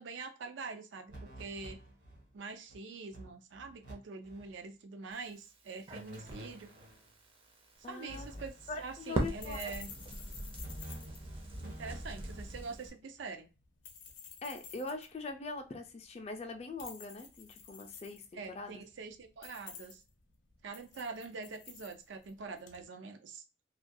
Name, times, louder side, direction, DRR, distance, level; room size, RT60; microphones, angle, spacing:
voice 1, 0.0-1.8 2.3-6.7 7.9-9.9 11.6-13.5 18.3-20.0 20.6-23.4, right 4 dB, 85° right, 0.4 m, -44 dB
sound 1, 1.1-2.3 2.7-2.8 3.1-3.9 4.2-4.5 5.9-7.0 8.1-9.0 10.6-12.6, right 1 dB, 70° right, 1.2 m, -49 dB
Crackle, 5.1-12.9, right 1 dB, 30° right, 0.5 m, -42 dB
sound 2, 7.8-22.8, left 7 dB, 85° left, 0.6 m, -54 dB
voice 2, 7.8-8.3 8.7-9.7 14.4-18.8, left 3 dB, 35° left, 0.4 m, -42 dB
2.3 x 2.2 x 2.5 m
head